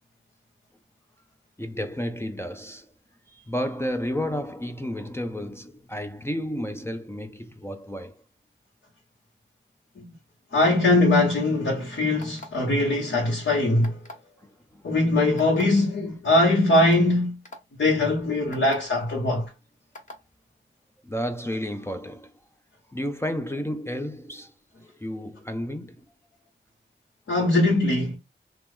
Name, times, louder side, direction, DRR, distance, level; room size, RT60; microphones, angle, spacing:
voice 1, 1.6-2.9 3.3-8.2 14.7-14.8 21.0-22.3 22.9-24.5 24.8-26.0, equal, 10° left, 0.5 m, -32 dB
voice 2, 10.5-14.0 14.8-17.4 17.7-19.5 27.3-28.2, left 2 dB, 65° left, 1.1 m, -21 dB
sound 1, 12.2-12.7 13.8-14.3 15.4-15.6 16.4-16.5 16.9-17.0 17.4-17.6 18.5-18.8 19.9-20.2, left 1 dB, 35° left, 1.3 m, -41 dB
2.9 x 2.0 x 3.5 m
cardioid pair, 40°, 21 cm